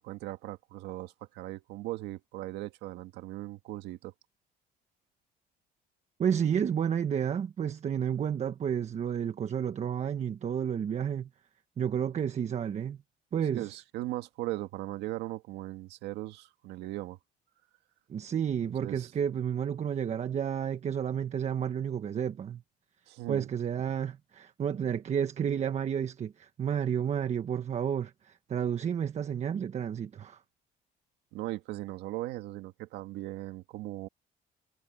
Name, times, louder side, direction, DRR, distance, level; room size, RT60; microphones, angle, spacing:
voice 1, 0.0-4.1 13.5-17.2 18.8-19.1 23.1-23.5 31.3-34.1, right 17 dB, 90° right, 1.8 m, -38 dB
voice 2, 6.2-11.3 11.8-13.0 13.3-13.7 18.1-22.6 23.3-30.4, right 8 dB, 40° right, 1.3 m, -31 dB
cardioid pair, 110°, 17 cm